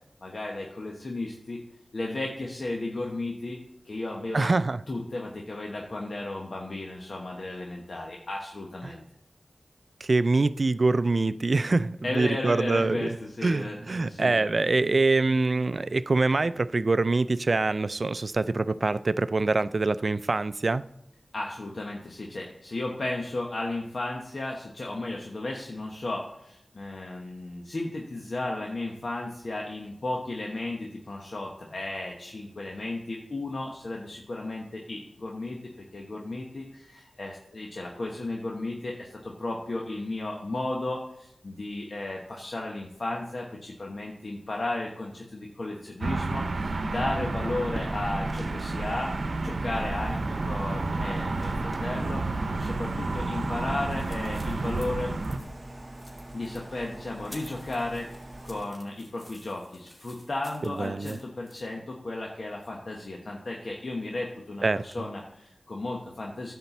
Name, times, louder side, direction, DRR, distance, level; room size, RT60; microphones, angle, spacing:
voice 1, 0.2-1.6 1.9-3.6 3.8-4.5 4.9-9.0 12.0-14.5 21.3-49.1 49.4-55.1 56.3-66.5, left 2 dB, 65° left, 1.1 m, -34 dB
voice 2, 4.3-4.8 8.8-8.9 10.0-13.1 13.4-20.8 60.8-61.2 64.6-64.8, right 3 dB, 60° right, 0.3 m, -24 dB
sound 1, 46.0-55.4, right 3 dB, 85° right, 0.7 m, -30 dB
sound 2, 47.7-58.7, right 1 dB, 25° right, 0.9 m, -43 dB
sound 3, 53.5-61.6, left 1 dB, 30° left, 2.5 m, -53 dB
10.5 x 4.3 x 7.0 m
cardioid pair, 40°, 0 cm